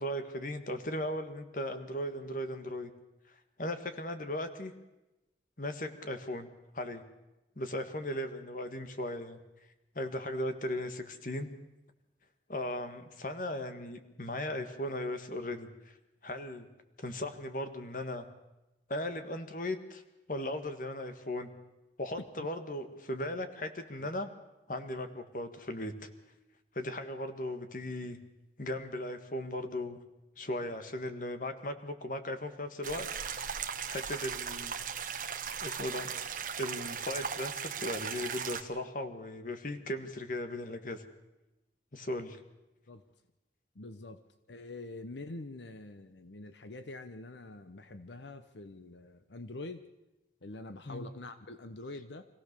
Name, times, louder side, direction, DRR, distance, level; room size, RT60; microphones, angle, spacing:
voice 1, 0.0-2.9 3.6-4.7 5.6-6.5 6.7-7.0 7.6-9.4 9.9-11.5 12.5-15.7 16.2-16.7 17.0-18.2 18.9-20.0 20.3-21.5 22.0-24.3 24.7-26.1 26.7-28.2 28.6-30.0 30.4-34.8 35.6-36.1 36.6-41.0 41.9-42.4 50.8-51.1, left 1 dB, 50° left, 8 dB, 1.6 m, -37 dB
voice 2, 22.2-22.5 42.9-43.0 43.7-44.2 44.5-49.8 50.4-52.3, left 2 dB, 85° left, 10 dB, 0.9 m, -45 dB
sound 1, 32.8-38.6, right 7 dB, 50° right, 1.4 m, -37 dB
25.5 x 16.5 x 6.7 m, 1.0 s
head